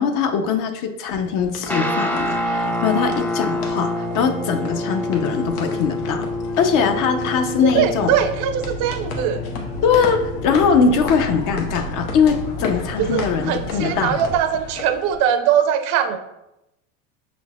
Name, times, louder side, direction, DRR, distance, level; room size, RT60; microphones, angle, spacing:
voice 1, 0.0-6.3 6.6-8.1 9.8-14.2, left 6 dB, 50° left, 6 dB, 0.7 m, -21 dB
sound 1, 1.0-15.1, left 3 dB, 90° left, 0.8 m, -37 dB
Guitar, 1.7-13.1, left 1 dB, 5° left, 0.4 m, -28 dB
sound 2, 2.4-14.4, left 1 dB, 70° left, 1.3 m, -34 dB
voice 2, 7.6-9.4 13.0-16.2, right 9 dB, 55° right, 8 dB, 0.6 m, -21 dB
6.0 x 3.8 x 2.3 m, 0.89 s
hypercardioid pair, 90°, 41 cm